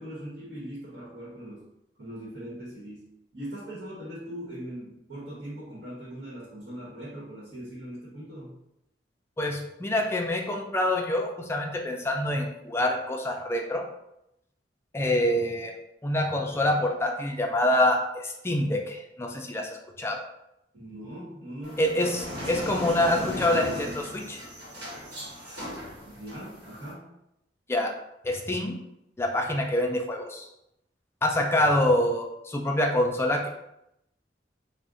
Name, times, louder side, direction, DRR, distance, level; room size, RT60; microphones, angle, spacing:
voice 1, 0.0-1.7 2.0-8.5 20.7-21.8 26.0-27.1, right 1 dB, 85° right, -7 dB, 1.0 m, -40 dB
voice 2, 9.4-13.8 14.9-15.7 16.0-20.2 21.8-24.4 27.7-27.9 28.2-28.7 29.2-30.5 31.2-33.5, left 1 dB, 15° left, 1 dB, 0.4 m, -26 dB
sound 1, 21.6-26.9, left 1 dB, 65° right, 1.3 m, -37 dB
2.5 x 2.1 x 3.6 m, 0.83 s
head